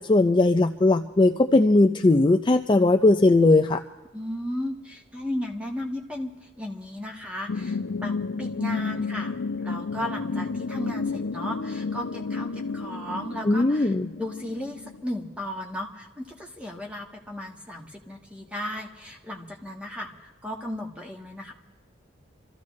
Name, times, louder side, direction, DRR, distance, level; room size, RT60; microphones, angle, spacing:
voice 1, 0.0-3.8 13.5-14.1, left 2 dB, 25° left, 5 dB, 0.4 m, -19 dB
voice 2, 4.1-21.5, left 1 dB, 5° right, 0 dB, 1.5 m, -35 dB
sound 1, 7.5-15.0, left 4 dB, 90° left, 0.6 m, -31 dB
27.0 x 14.0 x 3.2 m, 1.1 s
head